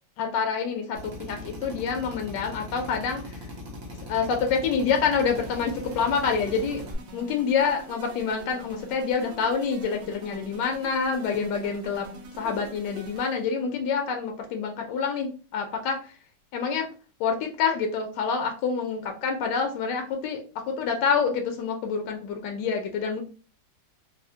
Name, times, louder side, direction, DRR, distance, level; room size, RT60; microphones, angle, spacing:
voice 1, 0.2-3.5 4.1-6.8 7.1-12.1 12.4-16.1 16.5-16.9 17.2-23.2, left 6 dB, 75° left, 4 dB, 1.2 m, -27 dB
Drill, 1.0-7.0, left 1 dB, 85° right, 1.6 m, -39 dB
sound 1, 5.2-13.6, right 3 dB, 70° right, 0.6 m, -45 dB
3.5 x 2.0 x 2.6 m, 0.36 s
omnidirectional pair, 1.9 m